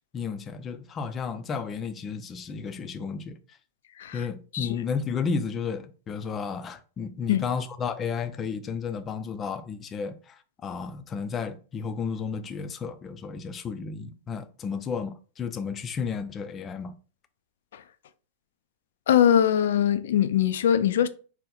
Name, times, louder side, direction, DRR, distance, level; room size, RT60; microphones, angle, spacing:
voice 1, 0.1-3.4 4.1-16.9, left 5 dB, 25° left, 0.5 m, -32 dB
voice 2, 19.1-21.1, left 9 dB, 80° left, 0.4 m, -22 dB
4.3 x 2.1 x 3.8 m
supercardioid pair, 135°, 0 cm